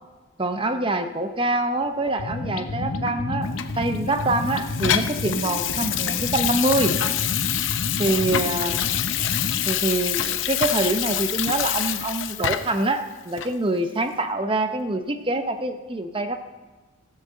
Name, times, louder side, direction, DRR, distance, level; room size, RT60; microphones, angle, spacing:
voice 1, 0.4-6.9 8.0-8.8 9.7-16.4, right 2 dB, 25° right, 7 dB, 0.7 m, -25 dB
sound 1, 2.1-9.7, left 2 dB, 80° left, 0.9 m, -31 dB
Water tap faucet / Sink (filling or washing), 3.6-12.9 13.4-13.5, left 11 dB, 60° left, 0.6 m, -26 dB
16.0 x 6.5 x 7.5 m, 1.3 s
head